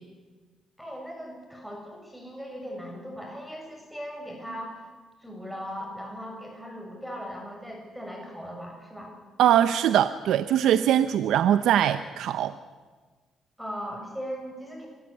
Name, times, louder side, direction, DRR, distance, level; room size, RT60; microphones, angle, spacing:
voice 1, 0.8-4.9 5.2-9.1 13.6-14.9, equal, ahead, 1 dB, 6.7 m, -38 dB
voice 2, 9.4-12.6, right 10 dB, 80° right, 11 dB, 0.7 m, -22 dB
25.0 x 14.5 x 9.8 m, 1.4 s
cardioid pair, 90°, 0 cm